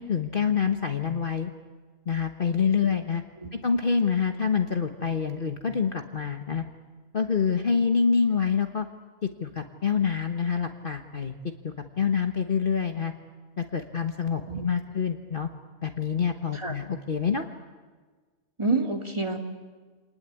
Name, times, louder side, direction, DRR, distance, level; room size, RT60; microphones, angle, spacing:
voice 1, 0.0-1.5 2.1-3.2 3.6-6.6 7.1-8.9 9.2-13.1 13.6-15.5 15.8-17.5, left 6 dB, 40° left, 5 dB, 1.3 m, -26 dB
voice 2, 18.6-19.4, right 3 dB, 20° right, 3 dB, 2.3 m, -28 dB
27.5 x 19.5 x 9.8 m, 1.4 s
omnidirectional pair, 1.5 m